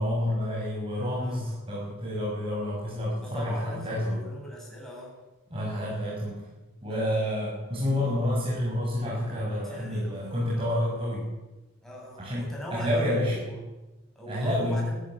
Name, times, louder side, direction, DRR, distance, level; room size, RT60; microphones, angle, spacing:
voice 1, 0.0-4.3 5.5-6.4 6.8-11.3 12.2-13.4 14.3-14.9, left 1 dB, 25° right, -5 dB, 6.5 m, -29 dB
voice 2, 1.2-1.6 3.2-5.2 6.8-7.2 9.6-10.7 11.8-13.6 14.1-15.0, equal, ahead, -4 dB, 8.0 m, -41 dB
21.0 x 14.0 x 9.4 m, 1.1 s
head